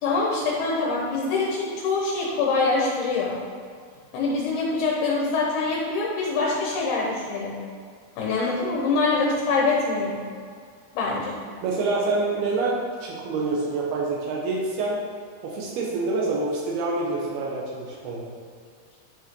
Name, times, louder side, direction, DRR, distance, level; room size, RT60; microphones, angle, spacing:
voice 1, 0.0-3.4 4.1-7.5 8.2-10.2 10.9-11.4, left 3 dB, 80° left, -3 dB, 3.1 m, -24 dB
voice 2, 11.6-15.0 15.4-18.3, right 3 dB, 80° right, -3 dB, 2.9 m, -26 dB
10.5 x 5.7 x 3.8 m, 2.1 s
omnidirectional pair, 4.5 m